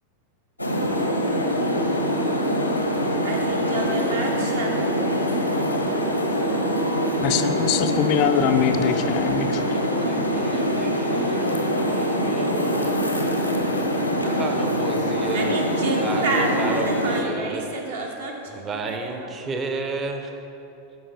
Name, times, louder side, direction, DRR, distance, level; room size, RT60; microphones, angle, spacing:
sound 1, 0.6-17.2, equal, 90° left, 0.8 m, -24 dB
voice 1, 3.2-4.9 15.3-19.3, right 3 dB, 60° right, 1 dB, 1.1 m, -30 dB
voice 2, 7.2-9.6, left 9 dB, 40° left, 8 dB, 0.4 m, -23 dB
voice 3, 9.9-13.0 14.2-15.5 16.0-17.6 18.5-20.4, right 3 dB, 25° right, 5 dB, 0.7 m, -32 dB
12.5 x 5.2 x 3.4 m, 3.0 s
figure-of-eight pair, 90°, 0 cm